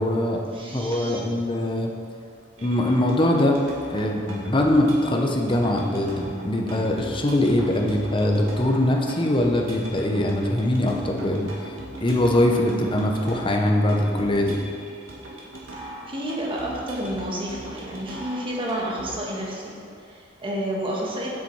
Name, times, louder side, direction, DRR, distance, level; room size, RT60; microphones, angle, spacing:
voice 1, 0.0-0.4 0.7-1.9 2.6-3.6 3.9-11.7 12.0-14.6, left 1 dB, 25° left, 1 dB, 0.8 m, -22 dB
voice 2, 0.5-1.2 15.8-21.3, right 1 dB, 30° right, -3 dB, 1.5 m, -31 dB
sound 1, 2.6-19.1, right 1 dB, 85° right, 1.7 m, -40 dB
7.4 x 6.8 x 4.8 m, 2.4 s
head